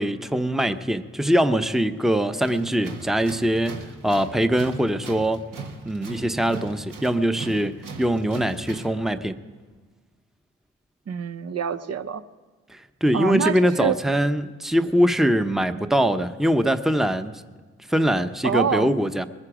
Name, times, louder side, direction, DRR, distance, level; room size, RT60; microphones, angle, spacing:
voice 1, 0.0-5.4 5.9-9.4 12.7-17.3 17.9-19.3, equal, ahead, 10 dB, 0.7 m, -22 dB
Tools, 2.4-9.0, right 4 dB, 75° right, 1.5 m, -39 dB
voice 2, 11.1-12.2 13.1-14.0 18.4-18.9, right 7 dB, 50° right, 11 dB, 0.7 m, -25 dB
20.5 x 9.8 x 4.9 m, 1.4 s
supercardioid pair, 45°, 32 cm